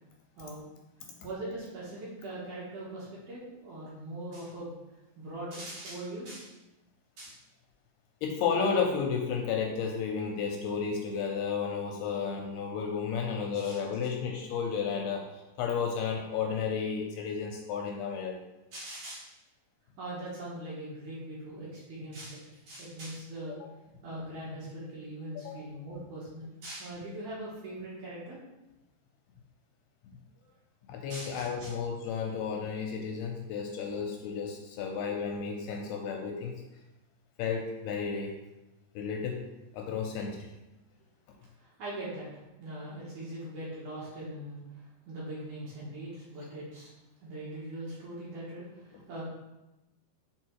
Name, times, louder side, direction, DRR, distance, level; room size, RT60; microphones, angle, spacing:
voice 1, 1.2-4.7 5.2-6.5 7.2-7.4 13.5-13.8 18.7-19.3 20.0-23.6 24.0-28.4 31.1-31.7 41.6-46.9 47.2-49.2, right 1 dB, 60° right, -7 dB, 2.4 m, -41 dB
voice 2, 8.2-18.4 25.4-25.7 30.9-36.6 37.4-38.3 39.0-39.5 39.7-40.5, left 6 dB, 80° left, 2 dB, 2.5 m, -32 dB
6.4 x 4.4 x 4.6 m, 0.99 s
omnidirectional pair, 5.0 m